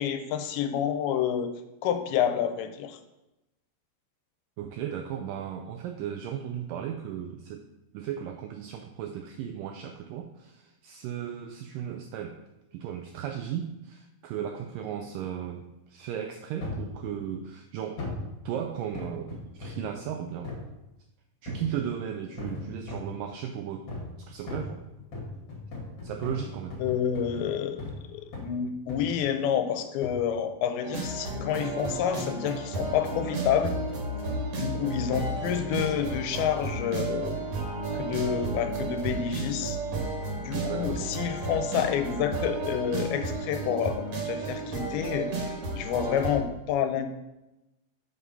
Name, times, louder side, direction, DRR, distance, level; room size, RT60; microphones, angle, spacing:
voice 1, 0.0-1.5 1.8-3.0 26.8-33.7 34.5-37.4 37.9-39.8 40.4-47.1, left 9 dB, 85° left, 8 dB, 2.6 m, -29 dB
voice 2, 4.6-7.7 7.9-12.4 12.7-18.1 18.5-20.6 21.4-23.9 24.2-24.8 26.0-26.8 40.5-41.2, right 9 dB, 90° right, 5 dB, 1.9 m, -36 dB
sound 1, 16.6-16.9 18.0-18.3 18.9-19.9 20.4-20.7 21.5-21.8 22.4-23.2 23.9-24.2 24.5-28.0 28.3-28.6 28.9-29.3 30.0-30.2 31.1-31.4 32.0-32.1, left 2 dB, 45° left, 2.4 m, -38 dB
sound 2, 30.8-46.4, right 2 dB, 55° right, 2.1 m, -32 dB
6.9 x 4.9 x 5.6 m, 0.95 s
omnidirectional pair, 4.4 m